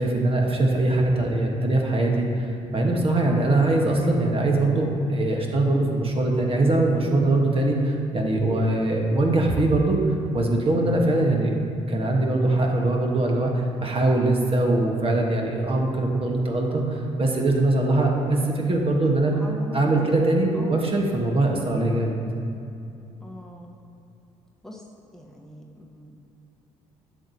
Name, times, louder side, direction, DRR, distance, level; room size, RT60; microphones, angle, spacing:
voice 1, 0.0-11.5 11.9-13.5 13.8-19.3 19.7-22.2, right 2 dB, 40° right, 0 dB, 1.2 m, -22 dB
voice 2, 19.0-20.2 20.5-20.8 23.2-23.8 24.6-24.8 25.1-26.2, equal, 5° left, -1 dB, 1.0 m, -40 dB
10.0 x 6.5 x 2.7 m, 2.7 s
hypercardioid pair, 55°, 15 cm